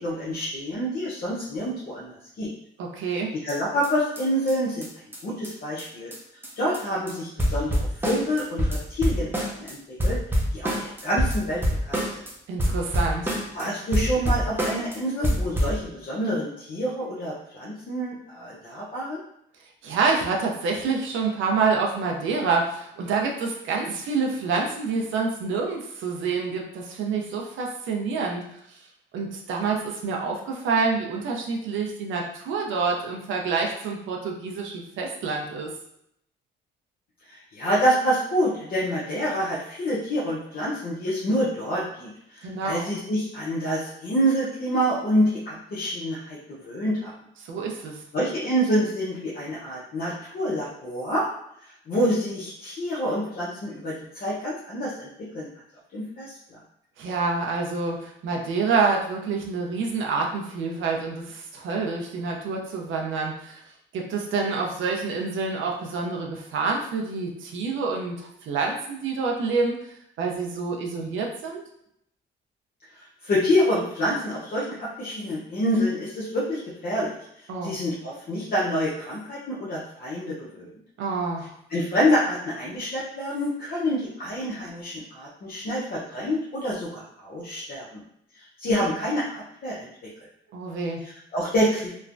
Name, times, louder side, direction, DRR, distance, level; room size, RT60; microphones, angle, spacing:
voice 1, 0.0-2.5 3.4-4.9 5.2-6.1 6.6-7.8 8.0-10.2 10.5-12.0 13.5-19.2 37.3-46.4 46.6-47.1 48.1-51.3 51.6-55.1 55.3-55.5 55.9-56.6 73.0-77.2 77.6-80.7 81.7-88.0 88.3-89.9 91.0-91.9, equal, 50° left, -7 dB, 0.7 m, -27 dB
voice 2, 2.8-3.4 12.5-13.3 19.8-28.4 28.7-28.8 29.1-35.7 42.4-42.8 47.4-48.0 57.0-63.6 63.9-69.7 70.2-71.6 77.5-77.8 81.0-81.5 90.5-91.0, right 4 dB, 75° right, 0 dB, 0.6 m, -27 dB
sound 1, 3.5-3.6 3.8-3.9 4.2-4.3 4.5-4.6 4.8-4.9 5.1-5.2 5.4-5.5 5.8-5.9 6.1-6.2 6.4-6.8 7.1-7.2 7.4-9.7 10.0-12.3 12.6-13.6 13.9-15.0 15.2-15.8, equal, 10° right, 0.7 m, -26 dB
3.1 x 2.1 x 2.5 m, 0.74 s
cardioid pair, 90°, 20 cm